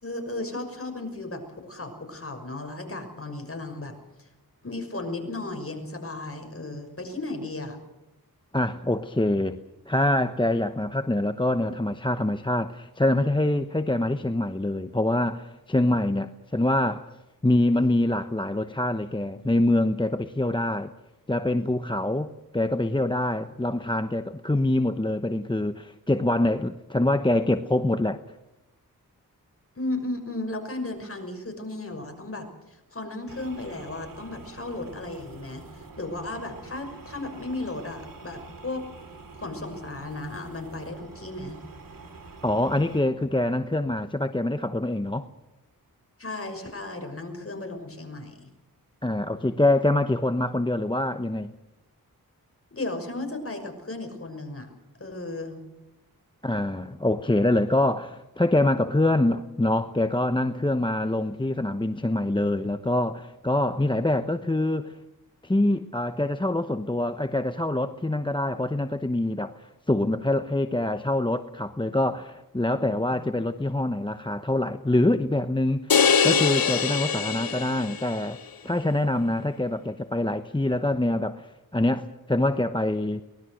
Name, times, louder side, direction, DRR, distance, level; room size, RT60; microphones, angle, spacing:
voice 1, 0.0-3.9 4.2-4.3 4.6-7.8 29.8-38.9 39.3-41.6 46.2-48.5 52.7-54.7 55.0-55.6, left 2 dB, 40° left, 4 dB, 5.9 m, -35 dB
voice 2, 8.5-9.6 9.9-17.1 17.4-20.9 21.3-28.2 42.4-45.3 49.0-51.5 56.4-65.0 65.4-78.4 78.6-83.2, left 1 dB, 15° left, 9 dB, 1.0 m, -25 dB
sound 1, 33.3-43.0, right 4 dB, 70° right, 3.2 m, -46 dB
sound 2, 75.9-78.2, left 6 dB, 75° left, 1.2 m, -23 dB
24.0 x 19.5 x 6.5 m, 0.97 s
wide cardioid pair, 65°, 35 cm